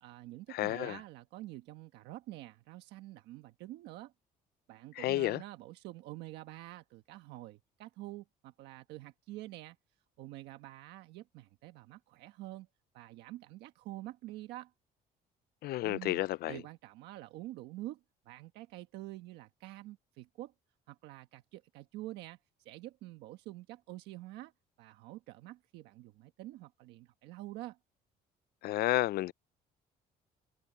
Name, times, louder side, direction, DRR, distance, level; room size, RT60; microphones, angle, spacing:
voice 1, 0.0-4.1 4.7-9.8 10.2-12.7 12.9-14.7 15.8-18.0 18.2-20.5 20.9-24.5 24.8-27.8, right 17 dB, 90° right, 1.3 m, -47 dB
voice 2, 0.6-1.0 5.0-5.4 15.6-16.5 28.6-29.3, left 16 dB, 70° left, 0.5 m, -31 dB
cardioid pair, 110°, 17 cm